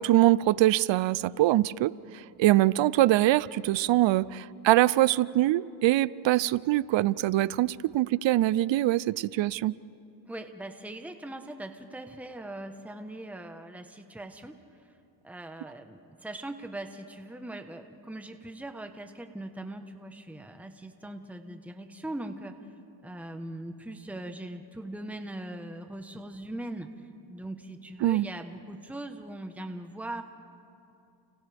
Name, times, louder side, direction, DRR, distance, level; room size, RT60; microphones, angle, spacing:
voice 1, 0.0-9.7 28.0-28.3, right 15 dB, 70° right, 20 dB, 0.6 m, -23 dB
voice 2, 10.3-14.6 15.2-22.6 23.0-26.9 27.3-30.2, right 1 dB, 5° right, 6 dB, 1.2 m, -40 dB
30.0 x 30.0 x 3.5 m, 2.6 s
cardioid pair, 85°, 47 cm